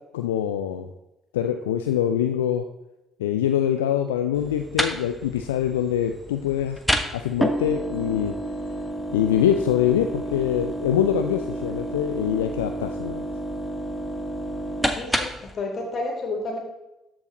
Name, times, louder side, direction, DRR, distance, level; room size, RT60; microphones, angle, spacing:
voice 1, 0.1-0.9 1.3-2.6 3.2-6.8 7.1-8.3 9.1-13.2, left 10 dB, 75° left, 6 dB, 0.4 m, -24 dB
sound 1, 4.3-15.5, right 1 dB, ahead, 1.0 m, -30 dB
voice 2, 15.0-16.6, left 2 dB, 45° left, 1 dB, 2.7 m, -30 dB
13.5 x 4.8 x 4.0 m, 0.95 s
figure-of-eight pair, 45°, 0 cm